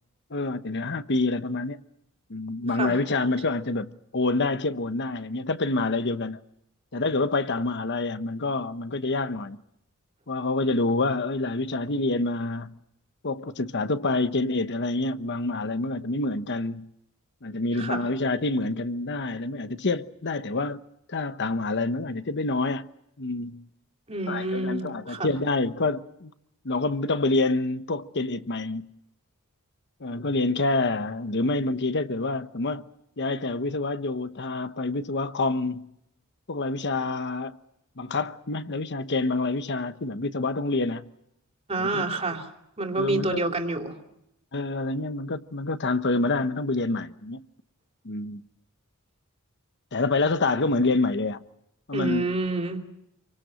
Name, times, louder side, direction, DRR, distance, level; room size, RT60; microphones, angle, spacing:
voice 1, 0.3-1.8 2.3-6.4 6.9-9.6 10.3-12.8 13.2-16.9 17.4-20.8 21.1-22.9 23.2-23.7 24.3-26.3 26.6-28.9 30.0-32.8 33.2-35.9 36.5-37.6 38.0-41.1 41.8-42.0 42.9-43.4 44.5-47.4 48.0-48.4 49.9-51.4 51.9-52.3, left 2 dB, 55° left, 1.1 m, -27 dB
voice 2, 17.7-18.1 24.1-25.3 41.7-42.5 42.8-44.0 51.9-52.8, right 2 dB, 30° right, 3.0 m, -28 dB
27.5 x 24.5 x 6.4 m
head